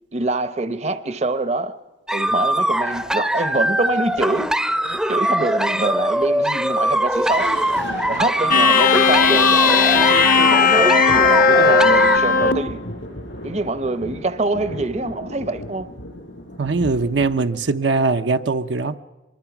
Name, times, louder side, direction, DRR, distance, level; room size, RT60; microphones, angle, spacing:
voice 1, 0.1-1.8 2.1-4.6 5.1-7.6 8.1-12.8 13.4-15.9, right 2 dB, 35° right, 0.7 m, -25 dB
sound 1, 2.1-12.2, right 1 dB, 5° right, 0.6 m, -21 dB
Thunder, 6.9-17.7, left 1 dB, 80° left, 6.9 m, -36 dB
Johann Demo, 8.5-12.7, left 5 dB, 45° left, 0.8 m, -16 dB
voice 2, 16.6-19.0, right 3 dB, 75° right, 0.7 m, -21 dB
24.0 x 22.0 x 6.0 m
head